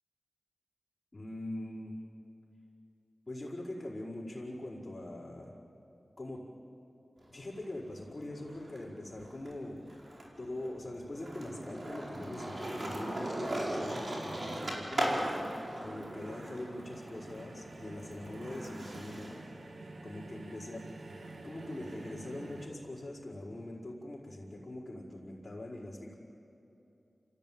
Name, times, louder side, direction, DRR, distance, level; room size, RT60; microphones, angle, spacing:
voice 1, 1.1-2.0 3.3-5.5 6.2-6.4 7.3-9.8 10.4-15.3 15.8-19.4 20.0-20.8 21.4-26.1, left 1 dB, 45° left, -9 dB, 5.2 m, -42 dB
Skateboard, 7.2-8.8 9.1-19.4, right 1 dB, 65° right, 4.9 m, -39 dB
sound 1, 12.8-22.7, right 2 dB, 90° right, 1.9 m, -50 dB
29.5 x 16.0 x 9.0 m, 2.9 s
cardioid pair, 45°, 0 cm